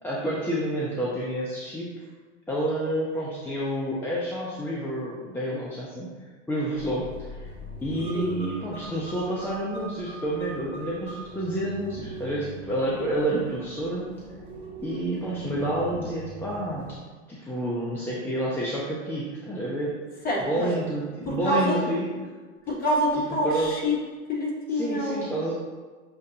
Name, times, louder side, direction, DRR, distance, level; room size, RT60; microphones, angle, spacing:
voice 1, 0.0-1.9 2.5-6.1 6.5-7.4 7.8-14.1 14.8-16.8 17.3-19.9 20.5-22.1 23.4-23.7 24.7-25.5, right 1 dB, 5° left, -6 dB, 0.6 m, -29 dB
sound 1, 6.7-17.0, right 1 dB, 15° right, 1.2 m, -41 dB
voice 2, 20.2-20.7 21.3-21.8 22.7-24.0 24.3-25.3, equal, 25° left, -3 dB, 1.2 m, -26 dB
6.4 x 2.5 x 2.8 m, 1.4 s
hypercardioid pair, 105°, 37 cm